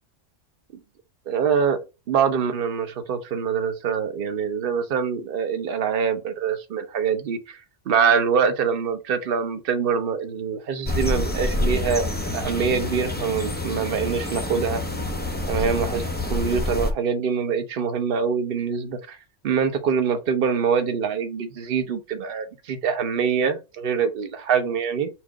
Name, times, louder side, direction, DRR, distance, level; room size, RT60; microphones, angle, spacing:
voice 1, 1.3-1.8 2.1-7.6 7.9-14.8 15.5-19.2 19.4-25.1, right 6 dB, 50° right, 0.9 m, -24 dB
sound 1, 10.8-16.9, left 1 dB, 10° left, 0.5 m, -27 dB
4.4 x 2.4 x 4.6 m
omnidirectional pair, 1.3 m